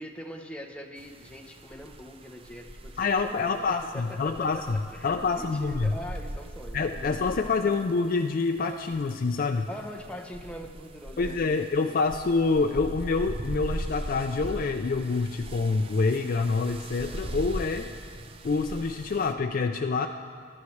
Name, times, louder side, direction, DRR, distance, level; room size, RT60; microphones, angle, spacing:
voice 1, 0.0-7.7 9.7-12.0, equal, 5° left, 3 dB, 0.8 m, -42 dB
sound 1, 1.0-19.3, right 1 dB, 25° right, 0.5 m, -40 dB
voice 2, 3.0-4.8 5.0-5.9 6.7-9.7 11.2-17.9 18.4-20.1, left 4 dB, 45° left, 5 dB, 0.3 m, -26 dB
21.0 x 11.5 x 3.2 m, 2.1 s
head